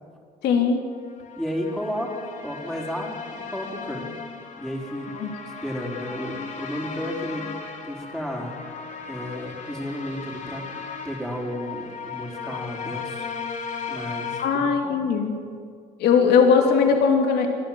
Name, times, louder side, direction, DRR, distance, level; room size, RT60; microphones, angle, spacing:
voice 1, 0.4-0.8 5.2-5.3 14.4-15.3 16.0-17.5, left 6 dB, 75° left, 3 dB, 2.9 m, -19 dB
sound 1, 1.1-14.4, left 5 dB, 45° left, 2.7 m, -36 dB
voice 2, 1.4-4.1 4.6-5.1 5.4-7.5 7.9-8.6 9.1-13.3 13.9-15.0, equal, 5° left, -2 dB, 4.4 m, -33 dB
23.5 x 14.5 x 7.7 m, 2.2 s
cardioid pair, 110°, 17 cm